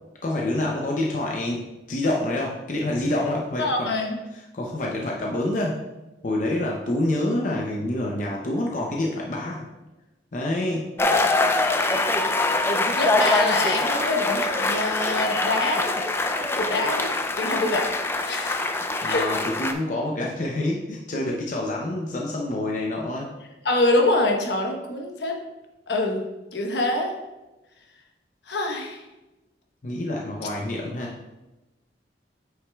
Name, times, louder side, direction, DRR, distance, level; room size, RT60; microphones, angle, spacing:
voice 1, 0.2-3.9 4.5-5.8 6.2-9.7 10.3-10.9 19.0-23.3 29.8-31.1, left 1 dB, 45° left, -1 dB, 0.7 m, -27 dB
voice 2, 3.6-4.2 12.6-16.0 16.6-17.1 17.4-17.9 18.1-18.7 19.1-19.2 23.6-25.4 25.9-26.3 26.5-27.1 28.5-29.0, left 2 dB, 75° left, 2 dB, 1.0 m, -25 dB
sound 1, 11.0-19.7, left 2 dB, 15° left, 0.4 m, -24 dB
8.0 x 6.3 x 2.3 m, 1.0 s
head